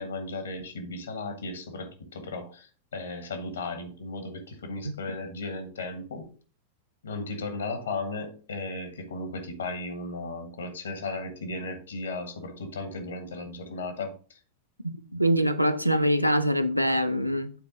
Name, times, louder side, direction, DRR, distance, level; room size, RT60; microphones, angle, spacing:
voice 1, 0.0-6.3 7.0-14.4, left 3 dB, 70° left, 1.3 m, -35 dB
voice 2, 14.8-17.5, equal, 90° right, 0.5 m, -24 dB
8.7 x 4.2 x 3.9 m
figure-of-eight pair, 90°, 0 cm